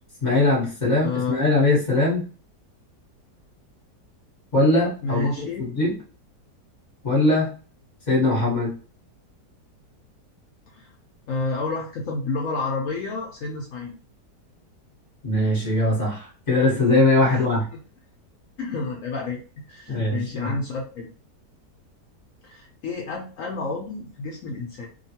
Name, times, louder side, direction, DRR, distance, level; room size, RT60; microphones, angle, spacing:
voice 1, 0.2-2.2 4.5-5.9 7.0-7.5 8.1-8.7 15.2-17.7 19.9-20.6, left 2 dB, 30° left, -4 dB, 1.0 m, -21 dB
voice 2, 1.0-1.4 5.0-5.7 10.7-10.9 11.3-13.9 17.3-17.6 18.6-19.4 19.7-21.1 22.4-24.9, left 3 dB, 75° left, 0 dB, 0.7 m, -30 dB
2.8 x 2.3 x 2.8 m, 0.37 s
omnidirectional pair, 1.8 m